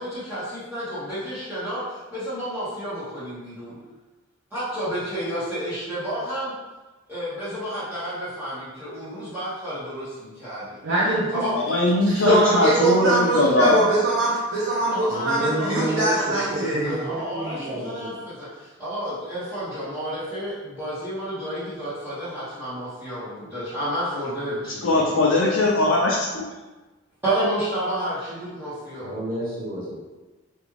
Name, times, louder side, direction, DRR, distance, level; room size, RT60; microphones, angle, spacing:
voice 1, 0.0-3.8 4.5-6.5 7.1-10.7 11.3-11.6 12.3-12.7 14.9-25.2 27.2-29.2, equal, 10° right, -15 dB, 1.1 m, -31 dB
voice 2, 10.8-11.3 12.0-17.0, right 2 dB, 90° right, -8 dB, 0.8 m, -22 dB
voice 3, 11.6-13.8 24.8-26.5, left 2 dB, 70° left, -4 dB, 0.5 m, -20 dB
voice 4, 14.7-18.1 29.0-30.0, right 1 dB, 45° right, -8 dB, 1.3 m, -30 dB
3.5 x 2.5 x 3.0 m, 1.2 s
head